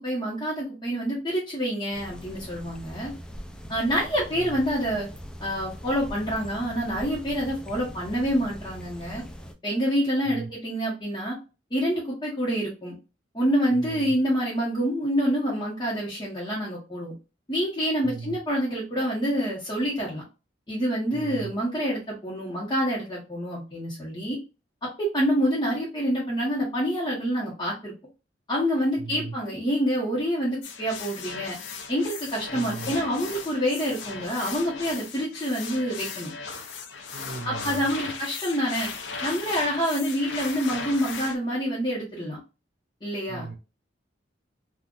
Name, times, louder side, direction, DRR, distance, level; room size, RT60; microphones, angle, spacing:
voice 1, 0.0-3.1 3.7-5.1 5.4-9.2 9.6-11.4 11.7-12.9 13.3-17.1 17.5-20.2 20.7-24.4 24.8-27.9 28.5-31.6 31.9-36.3 37.4-38.9 39.2-42.4 43.0-43.5, equal, 25° left, -6 dB, 1.0 m, -27 dB
sound 1, 1.9-9.5, equal, 5° left, 0.4 m, -41 dB
voice 2, 4.3-4.6 10.2-10.5 13.7-14.2 18.0-18.4 21.1-21.5 29.0-29.4 32.5-33.0 37.1-37.9 43.3-43.6, right 3 dB, 90° right, 5 dB, 0.7 m, -37 dB
sound 2, 30.6-41.4, left 5 dB, 75° left, 0.6 m, -37 dB
3.7 x 2.4 x 2.4 m, 0.31 s
head